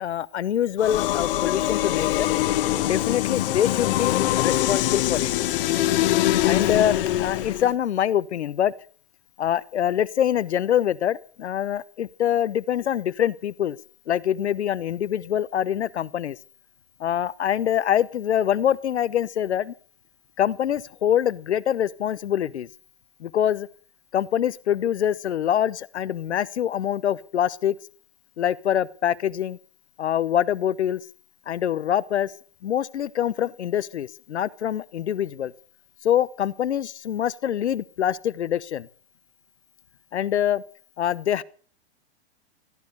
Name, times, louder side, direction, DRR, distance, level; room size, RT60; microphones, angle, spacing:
voice 1, 0.0-2.3 2.8-5.3 6.4-8.7 9.4-13.8 14.1-16.4 17.0-19.7 20.4-22.7 23.2-23.7 24.1-27.7 28.4-29.6 30.0-31.0 31.5-32.3 32.6-35.5 36.0-38.9 40.1-40.6 41.0-41.4, left 10 dB, 85° left, 1.0 m, -24 dB
sound 1, 0.8-7.7, left 14 dB, 55° left, 1.4 m, -23 dB
16.5 x 10.5 x 6.8 m
hypercardioid pair, 140°, 33 cm